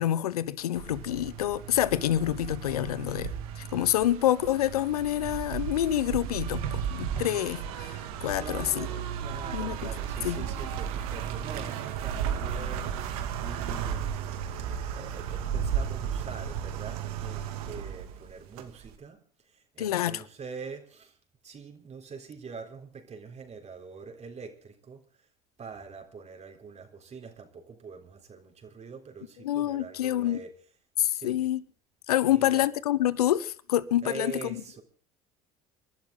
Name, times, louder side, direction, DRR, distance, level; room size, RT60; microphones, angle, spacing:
voice 1, 0.0-8.9 9.5-9.8 10.2-10.5 19.8-20.2 29.4-30.4 31.0-31.6 32.1-34.8, left 12 dB, 85° left, 0.9 m, -27 dB
sound 1, 0.8-18.9, right 8 dB, 75° right, 2.4 m, -34 dB
voice 2, 8.3-21.2 21.4-25.3 25.6-30.5 31.1-31.5 32.2-32.7 34.0-34.8, right 5 dB, 35° right, 3.8 m, -44 dB
28.0 x 12.0 x 3.8 m
hypercardioid pair, 75°, 19 cm